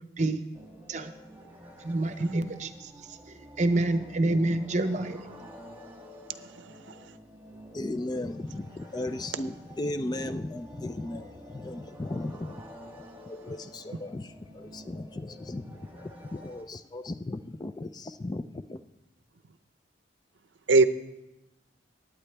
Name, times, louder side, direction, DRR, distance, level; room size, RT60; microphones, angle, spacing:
sound 1, 0.5-16.6, equal, 10° right, 1.5 m, -49 dB
voice 1, 1.8-2.9 3.6-5.3, right 2 dB, 40° right, 10 dB, 0.7 m, -27 dB
voice 2, 6.4-7.1 20.7-20.9, right 3 dB, 75° right, 12 dB, 0.6 m, -23 dB
voice 3, 7.7-12.6 13.3-18.8, left 1 dB, 20° left, 11 dB, 0.3 m, -36 dB
19.5 x 9.0 x 3.4 m, 0.94 s
head